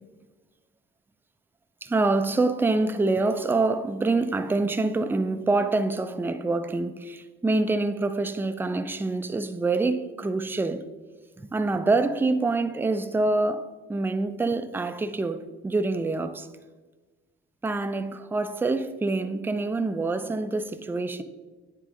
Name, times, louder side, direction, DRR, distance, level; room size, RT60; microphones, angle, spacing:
voice 1, 1.8-10.8 11.4-16.5 17.6-21.2, right 3 dB, 5° right, 0.3 m, -26 dB
9.1 x 3.6 x 3.7 m
cardioid pair, 75°, 31 cm